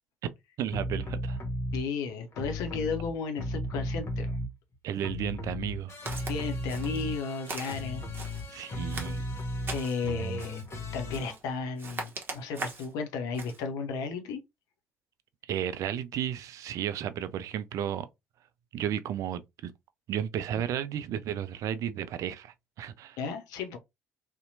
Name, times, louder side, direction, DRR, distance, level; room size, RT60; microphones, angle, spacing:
voice 1, 0.6-1.4 4.8-5.9 8.5-9.2 15.5-18.1 18.7-19.7 20.1-23.2, right 10 dB, 55° right, 0.3 m, -33 dB
sound 1, 0.7-1.8 2.3-4.7 5.0-11.4, left 1 dB, 40° left, 0.9 m, -35 dB
voice 2, 1.7-4.4 6.3-8.1 8.6-8.9 9.7-10.6 10.9-14.4 23.2-23.8, left 5 dB, 65° left, 0.5 m, -34 dB
Walk footsteps, 6.1-6.4 6.7-7.1 7.4-8.5 8.9-10.0 10.4-10.7 11.1-11.4 11.8-12.9 13.3-13.6, right 3 dB, 35° right, 0.8 m, -40 dB
2.7 x 2.1 x 2.6 m
figure-of-eight pair, 50°, 7 cm